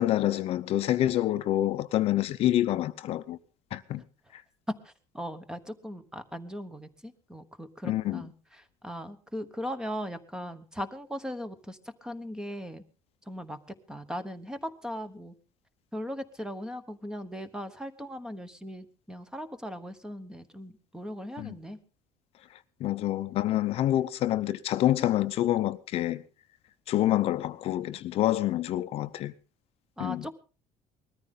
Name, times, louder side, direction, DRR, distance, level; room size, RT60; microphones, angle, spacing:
voice 1, 0.0-3.4 3.7-4.0 4.3-4.4 7.8-8.2 21.4-21.5 22.8-26.2 26.9-29.3 30.0-30.3, left 13 dB, 50° left, 0.7 m, -27 dB
voice 2, 4.8-12.8 13.3-13.6 13.9-15.3 15.9-21.8 30.0-30.3, equal, 5° right, 1.1 m, -39 dB
20.5 x 14.0 x 3.8 m
cardioid pair, 155°, 13 cm